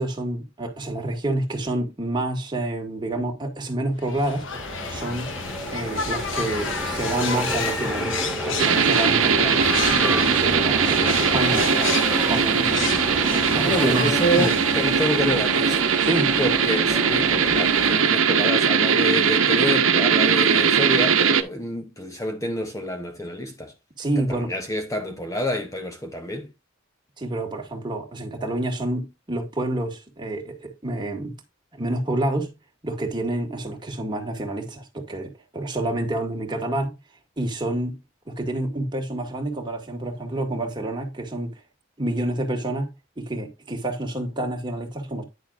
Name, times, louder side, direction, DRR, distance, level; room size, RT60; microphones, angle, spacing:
voice 1, 0.0-4.5 4.9-5.3 5.7-13.1 13.5-14.5 16.0-16.4 24.0-24.5 27.2-31.3 31.7-32.5 32.8-37.0 37.4-38.0 38.3-41.6 42.0-42.9 43.2-45.2, right 1 dB, 20° right, 2.0 m, -28 dB
sound 1, 4.0-15.6, left 5 dB, 65° left, 1.1 m, -31 dB
sound 2, 4.5-18.0, right 1 dB, 5° right, 1.5 m, -31 dB
sound 3, 8.6-21.4, right 6 dB, 80° right, 0.9 m, -20 dB
voice 2, 13.6-15.8 16.4-23.7 24.3-26.5, equal, 15° left, 0.9 m, -28 dB
10.0 x 6.4 x 2.5 m
head